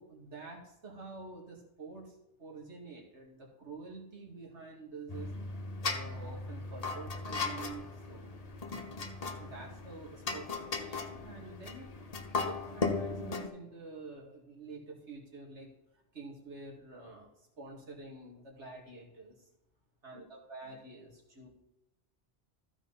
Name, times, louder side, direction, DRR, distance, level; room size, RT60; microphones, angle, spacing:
voice 1, 0.0-5.3 5.8-8.4 9.4-11.9 12.5-15.7 16.1-17.3 17.6-19.4 20.0-21.5, right 3 dB, 80° right, -2 dB, 2.6 m, -48 dB
sound 1, 5.1-13.5, left 3 dB, 40° left, 0.9 m, -37 dB
14.5 x 4.9 x 4.1 m, 0.90 s
omnidirectional pair, 1.2 m